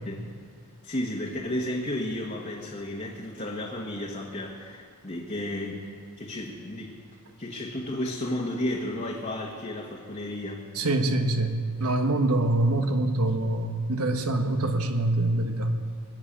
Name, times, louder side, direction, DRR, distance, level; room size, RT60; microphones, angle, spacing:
voice 1, 0.8-5.9 6.2-6.9 7.4-10.7, left 1 dB, 35° left, -3 dB, 1.3 m, -33 dB
voice 2, 10.7-15.8, right 2 dB, 85° right, 6 dB, 1.2 m, -25 dB
21.0 x 7.5 x 8.7 m, 2.1 s
head